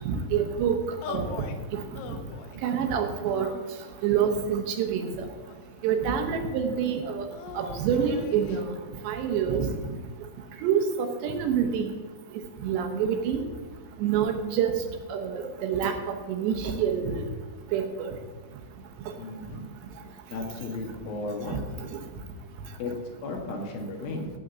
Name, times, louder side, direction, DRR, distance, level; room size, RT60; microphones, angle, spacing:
voice 1, 0.0-0.8 1.1-1.3 1.7-1.8 2.6-3.5 4.0-5.2 5.8-7.3 7.6-8.7 9.0-9.7 10.6-11.9 12.6-13.4 14.0-14.7 15.1-17.2 17.7-18.1 21.8-21.9, right 7 dB, 75° right, 6 dB, 2.9 m, -27 dB
sound 1, 1.0-1.6 2.0-2.6 3.3-4.2 4.9-5.9 7.3-8.7, left 5 dB, 80° left, 3.3 m, -41 dB
voice 2, 19.2-19.6 20.3-21.6 22.8-22.9 23.2-24.3, left 3 dB, 60° left, 1 dB, 3.0 m, -34 dB
15.5 x 5.3 x 8.0 m, 1.4 s
omnidirectional pair, 5.6 m